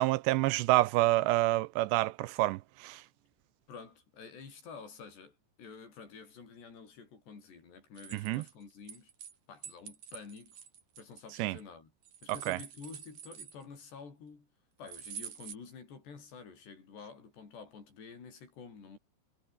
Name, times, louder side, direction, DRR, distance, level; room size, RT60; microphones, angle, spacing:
voice 1, 0.0-3.0 8.1-8.4 11.4-11.6 12.3-12.6, right 18 dB, 80° right, 2.7 m, -28 dB
voice 2, 3.7-9.1 9.5-10.6 11.0-11.9 12.2-14.5 14.8-19.0, left 5 dB, 65° left, 8.0 m, -49 dB
sound 1, 7.9-9.3 9.6-11.6 12.0-13.9 14.9-15.5, right 8 dB, 50° right, 3.6 m, -47 dB
omnidirectional pair, 5.2 m